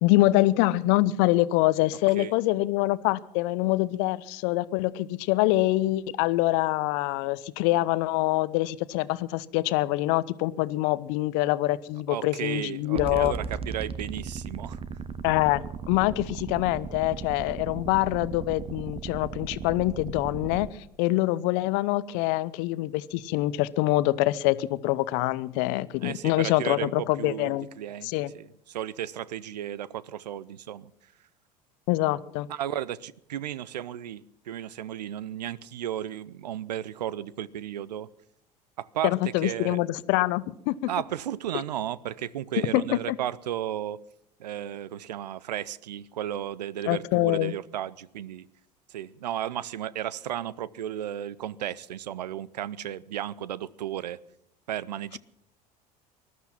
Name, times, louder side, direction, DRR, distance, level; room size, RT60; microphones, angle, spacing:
voice 1, 0.0-13.3 15.2-20.7 21.0-27.7 28.0-28.3 31.9-32.5 39.0-40.9 42.7-43.2 46.9-47.5, left 18 dB, 60° left, 0.7 m, -25 dB
voice 2, 12.1-14.8 26.0-30.9 32.5-38.1 38.8-39.1 39.4-39.8 40.9-44.0 44.4-48.5 48.9-54.2 54.7-55.2, right 11 dB, 80° right, 0.6 m, -34 dB
sound 1, 13.0-20.7, right 6 dB, 25° right, 1.0 m, -37 dB
20.0 x 12.5 x 5.8 m
hypercardioid pair, 70°, 21 cm